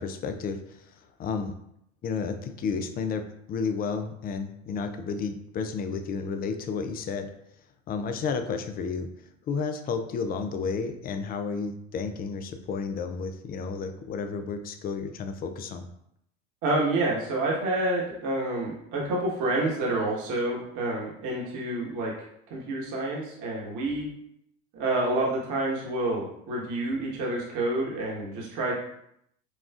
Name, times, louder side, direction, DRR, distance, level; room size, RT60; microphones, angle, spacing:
voice 1, 0.0-1.5 2.0-7.3 7.9-15.9, left 5 dB, 25° left, 7 dB, 0.3 m, -32 dB
voice 2, 16.6-22.1 22.5-24.1 24.7-28.7, right 2 dB, 50° right, -3 dB, 1.2 m, -28 dB
6.1 x 2.3 x 2.4 m, 0.76 s
hypercardioid pair, 85°, 40 cm